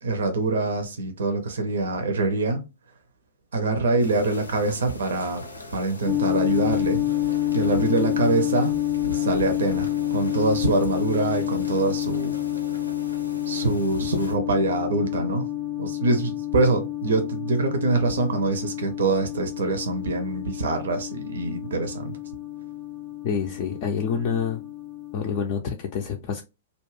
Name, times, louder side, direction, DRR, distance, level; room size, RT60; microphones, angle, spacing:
voice 1, 0.0-2.6 3.5-5.5 5.7-7.0 7.5-8.7 9.1-12.3 13.5-15.5 15.8-22.2, right 3 dB, 65° right, 0.5 m, -24 dB
sound 1, 4.0-14.3, left 2 dB, 90° left, 0.6 m, -41 dB
sound 2, 6.1-25.6, left 14 dB, 20° right, 0.5 m, -28 dB
voice 2, 23.2-24.6 25.1-26.4, left 6 dB, 45° left, 0.4 m, -27 dB
2.4 x 2.1 x 3.2 m
figure-of-eight pair, 110°, 0 cm